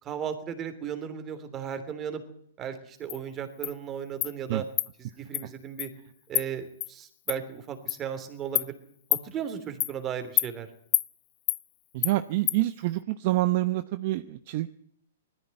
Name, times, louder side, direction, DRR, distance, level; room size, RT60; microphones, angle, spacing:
voice 1, 0.0-2.2 2.6-4.6 5.0-5.9 6.3-8.7 9.2-10.7, right 8 dB, 20° right, 8 dB, 3.2 m, -35 dB
Insect, 3.1-3.2 3.6-3.7 4.2-4.3 4.8-4.9 5.3-5.4 5.8-5.9 6.3-6.5 6.8-6.9 7.3-7.4 7.9-8.0 8.6-8.7 9.1-9.2 9.8-9.9 10.4-10.5 10.9-11.1 11.5-11.6 12.0-12.1 12.5-12.6, left 17 dB, 30° left, 0.7 m, -26 dB
voice 2, 11.9-14.7, right 17 dB, 45° right, 11 dB, 0.9 m, -27 dB
20.0 x 14.0 x 9.2 m, 0.68 s
hypercardioid pair, 150°, 0 cm